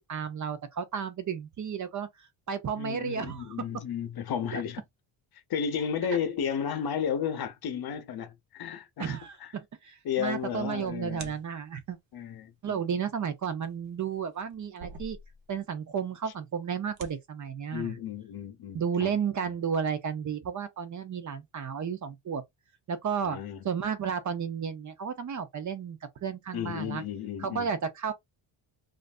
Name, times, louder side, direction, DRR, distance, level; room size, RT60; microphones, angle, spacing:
voice 1, 0.1-2.1 2.5-3.6 4.5-4.6 6.1-6.2 9.0-12.0 12.6-15.2 15.5-18.0 18.7-22.4 22.9-23.4 23.6-27.0 27.4-28.1, right 7 dB, 40° right, 0.6 m, -33 dB
voice 2, 2.7-4.8 5.5-9.5 10.0-11.3 12.1-12.8 17.7-19.1 23.2-23.6 26.5-27.7, left 8 dB, 50° left, 0.7 m, -33 dB
sound 1, 10.2-11.8 13.2-15.7 16.0-16.1 16.7-17.2, right 3 dB, 70° right, 1.0 m, -47 dB
3.1 x 2.5 x 2.4 m
cardioid pair, 135°, 47 cm